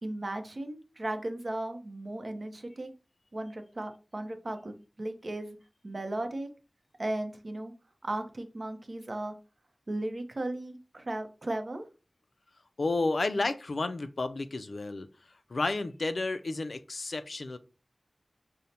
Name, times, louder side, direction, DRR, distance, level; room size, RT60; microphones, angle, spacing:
voice 1, 0.0-2.9 3.3-5.6 5.8-6.5 7.0-7.7 8.0-9.3 9.9-11.9, right 1 dB, 55° right, 0.6 m, -36 dB
voice 2, 12.8-15.1 15.5-17.6, left 3 dB, 70° left, 0.3 m, -31 dB
5.1 x 2.0 x 2.8 m
wide cardioid pair, 65°, 0 cm